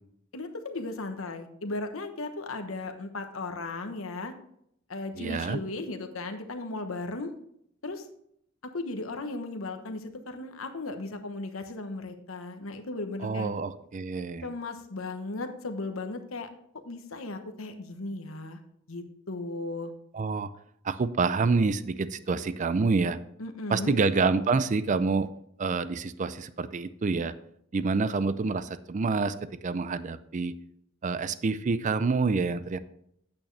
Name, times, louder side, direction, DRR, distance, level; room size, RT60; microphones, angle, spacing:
voice 1, 0.3-4.3 4.9-7.3 7.8-8.0 8.7-13.5 14.4-16.5 16.8-18.6 18.9-19.9 23.4-24.0, left 2 dB, 80° left, 6 dB, 1.1 m, -36 dB
voice 2, 5.1-5.6 13.2-14.5 20.1-20.5 20.8-23.2 23.7-25.3 25.6-27.3 27.7-29.4 29.6-30.5 31.0-32.8, right 4 dB, 35° right, 14 dB, 0.4 m, -27 dB
8.9 x 8.6 x 3.3 m, 0.72 s
head